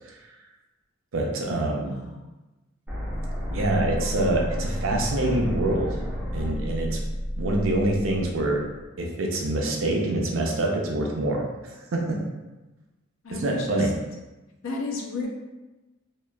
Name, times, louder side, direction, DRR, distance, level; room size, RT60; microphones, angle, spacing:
voice 1, 1.1-1.9 3.5-6.0 6.3-7.0 7.4-8.6 9.0-12.2 13.3-13.9, right 1 dB, 70° right, 0 dB, 0.5 m, -25 dB
voice 2, 1.8-2.3 13.2-13.8 14.6-15.3, left 3 dB, 70° left, 0 dB, 0.5 m, -33 dB
sound 1, 2.9-8.8, equal, 5° right, 0.6 m, -31 dB
2.8 x 2.4 x 2.3 m, 1.1 s
head